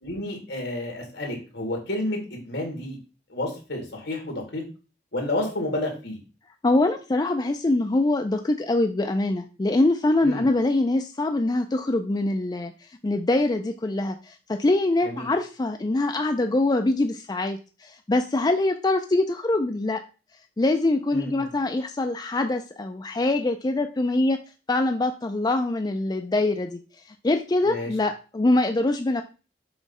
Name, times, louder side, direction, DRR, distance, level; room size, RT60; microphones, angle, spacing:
voice 1, 0.0-3.0 3.3-4.6 5.1-6.2 10.2-10.5 15.0-15.3 21.1-21.5 27.6-27.9, left 1 dB, 65° left, 1 dB, 2.7 m, -30 dB
voice 2, 6.6-12.7 13.0-20.0 20.6-24.4 24.7-26.8 27.2-29.2, left 2 dB, 20° left, 6 dB, 0.4 m, -24 dB
7.0 x 3.1 x 5.5 m, 0.34 s
head